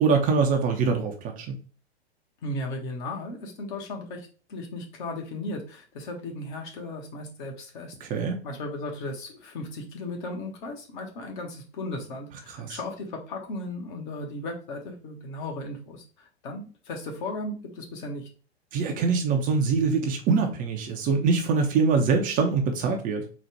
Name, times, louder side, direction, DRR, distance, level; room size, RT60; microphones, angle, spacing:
voice 1, 0.0-1.5 8.0-8.4 12.6-12.8 18.7-23.2, right 5 dB, 25° right, 4 dB, 0.7 m, -24 dB
voice 2, 2.4-18.3, left 2 dB, 50° left, 1 dB, 1.3 m, -36 dB
4.0 x 2.4 x 4.7 m, 0.37 s
figure-of-eight pair, 105°, 32 cm